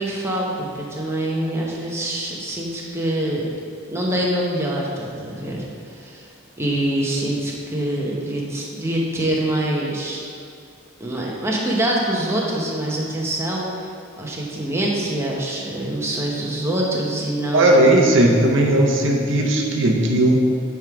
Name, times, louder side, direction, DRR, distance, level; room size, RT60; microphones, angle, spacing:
voice 1, 0.0-3.4 3.9-6.3 6.6-10.2 11.0-13.9 14.2-17.9, right 1 dB, 15° right, -3 dB, 1.0 m, -25 dB
voice 2, 17.5-20.4, right 1 dB, 65° right, 0 dB, 0.8 m, -16 dB
8.9 x 3.6 x 4.9 m, 2.3 s
head